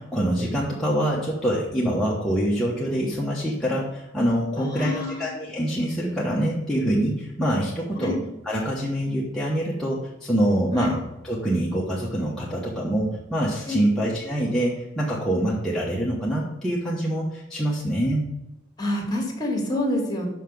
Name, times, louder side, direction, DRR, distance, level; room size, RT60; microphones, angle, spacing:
voice 1, 0.0-8.1 8.4-18.2, right 1 dB, 5° left, -6 dB, 1.1 m, -25 dB
voice 2, 4.6-5.3 8.0-8.2 10.8-10.9 13.7-13.9 18.8-20.3, left 1 dB, 20° left, 1 dB, 1.9 m, -27 dB
5.8 x 5.7 x 6.9 m, 0.94 s
head